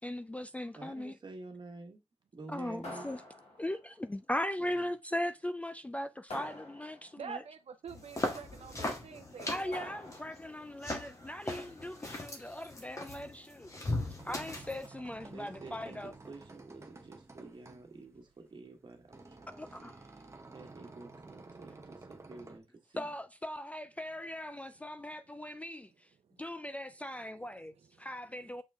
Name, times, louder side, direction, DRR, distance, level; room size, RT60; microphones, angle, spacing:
voice 1, 0.0-1.2 2.5-3.2 3.6-7.4 9.5-13.7 14.2-16.1 19.5-20.0 23.0-25.8 26.4-28.6, left 1 dB, 10° left, 0.3 m, -39 dB
voice 2, 0.7-2.0 2.3-3.1 4.6-4.8 15.3-19.5 19.8-19.9 20.5-22.6 22.9-23.1, right 3 dB, 45° right, 1.7 m, -49 dB
sound 1, 2.8-3.9 6.3-7.3 9.7-10.6, left 2 dB, 80° left, 2.1 m, -46 dB
voice 3, 7.2-9.9 20.5-20.6 28.0-28.1, right 6 dB, 70° right, 0.6 m, -46 dB
sound 2, 7.9-14.9, left 2 dB, 30° left, 1.4 m, -39 dB
sound 3, 14.2-22.6, right 3 dB, 25° right, 0.9 m, -53 dB
7.0 x 4.3 x 3.5 m
wide cardioid pair, 160°, 11 cm